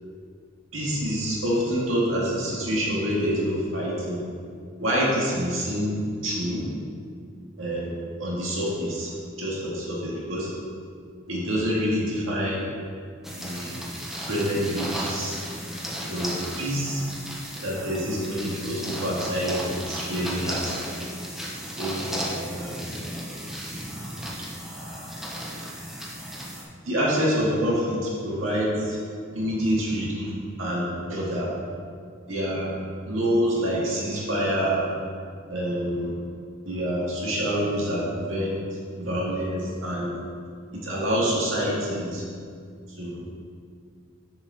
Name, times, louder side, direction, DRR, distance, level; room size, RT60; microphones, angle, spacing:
voice 1, 0.7-4.2 4.8-6.6 7.6-7.9 8.2-9.1 9.4-10.5 11.3-12.6 13.4-13.8 14.3-15.4 16.1-17.0 17.6-20.7 21.8-22.1 22.5-23.0 26.9-29.0 29.3-30.3 30.6-31.5 32.3-32.7 33.1-34.9 35.5-36.1 36.7-38.6 39.0-40.2 40.7-42.2 42.9-43.2, equal, 85° right, -5 dB, 2.0 m, -27 dB
sound 1, 13.2-26.6, equal, ahead, 0.8 m, -34 dB
7.1 x 6.0 x 4.1 m, 2.2 s
head